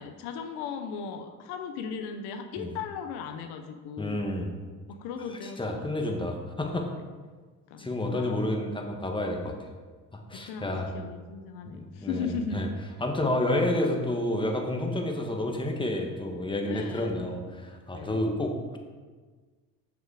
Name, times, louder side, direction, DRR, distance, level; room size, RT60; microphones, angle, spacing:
voice 1, 0.0-4.2 4.9-6.1 7.7-8.4 10.3-12.6 16.7-17.2 17.9-18.2, left 6 dB, 85° left, 6 dB, 0.8 m, -37 dB
voice 2, 4.0-4.5 5.6-6.9 7.8-9.5 10.1-10.9 11.7-12.7 13.0-18.8, left 1 dB, 15° left, 2 dB, 1.5 m, -30 dB
7.2 x 6.3 x 4.8 m, 1.4 s
supercardioid pair, 75°, 38 cm